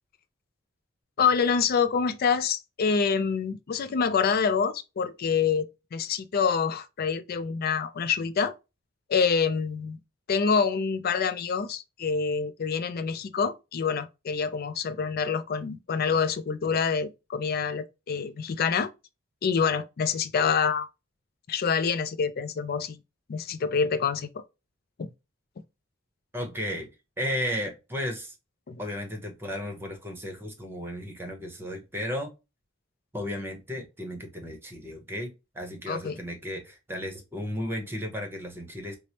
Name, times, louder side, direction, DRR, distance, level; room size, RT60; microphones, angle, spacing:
voice 1, 1.2-8.5 9.1-10.0 10.3-18.9 19.4-20.9 21.5-23.0 23.3-24.4 25.0-25.1 28.7-28.8 35.9-36.2, left 6 dB, 50° left, 0.4 m, -26 dB
voice 2, 26.3-26.9 27.2-28.3 28.8-32.3 33.1-39.0, equal, 10° right, 0.8 m, -34 dB
4.6 x 2.1 x 2.8 m
head